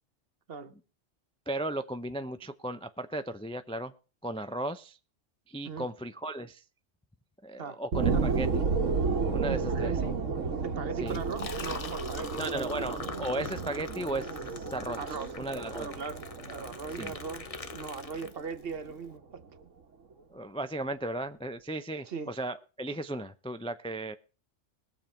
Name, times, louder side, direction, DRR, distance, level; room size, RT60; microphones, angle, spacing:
voice 1, 1.5-3.9 4.2-5.0 5.5-6.6 7.4-8.8 9.2-9.9 11.0-11.2 12.4-15.9 16.5-16.6 17.0-17.2 20.3-24.1, right 1 dB, 10° left, 0.4 m, -36 dB
sound 1, 7.9-18.9 19.4-19.5, right 4 dB, 85° right, 1.6 m, -32 dB
voice 2, 9.7-10.2 10.6-12.8 15.0-15.3 15.7-16.2 16.5-17.5 17.7-19.4 22.0-22.3, right 5 dB, 55° right, 1.1 m, -39 dB
Liquid, 11.0-18.7, left 5 dB, 35° left, 0.8 m, -43 dB
21.0 x 7.3 x 4.4 m
omnidirectional pair, 1.3 m